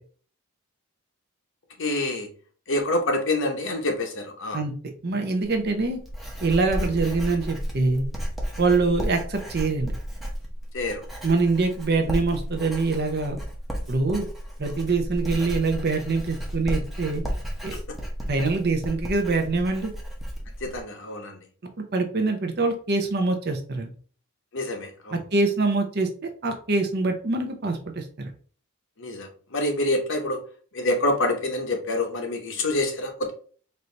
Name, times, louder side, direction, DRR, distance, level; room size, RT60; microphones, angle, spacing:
voice 1, 1.8-2.3 2.7-4.6 10.7-11.0 20.6-21.4 24.5-25.2 29.0-30.4 30.7-33.3, left 2 dB, 55° left, 4 dB, 0.9 m, -26 dB
voice 2, 5.0-6.0 6.4-8.0 8.6-9.9 11.2-13.4 13.9-14.3 14.6-17.2 17.6-17.8 18.3-19.9 21.9-23.9 25.1-26.1 26.4-28.3, right 3 dB, 45° right, 4 dB, 0.7 m, -24 dB
Writing, 5.4-20.8, equal, ahead, 0.8 m, -33 dB
4.4 x 2.7 x 3.2 m, 0.41 s
head